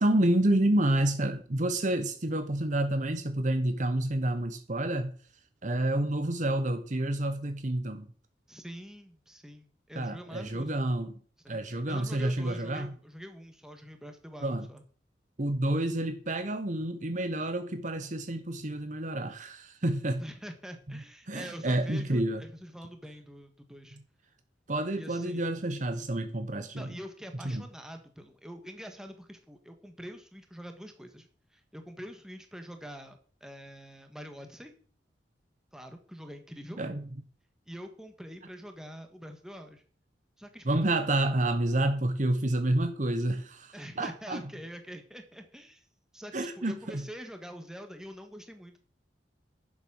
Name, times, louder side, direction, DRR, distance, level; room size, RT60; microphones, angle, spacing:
voice 1, 0.0-5.1 5.6-8.1 10.0-11.1 11.5-12.9 14.4-14.7 15.4-20.2 20.9-21.0 21.3-22.4 24.7-27.0 27.4-27.6 36.8-37.0 40.6-44.4 46.3-47.1, right 1 dB, 45° right, 1.0 m, -29 dB
voice 2, 8.5-10.8 11.4-14.8 20.2-24.0 25.0-25.5 26.8-34.7 35.7-36.8 37.7-39.8 40.4-40.9 43.7-45.9 46.1-48.8, equal, 5° right, 1.6 m, -45 dB
11.0 x 7.4 x 6.4 m
head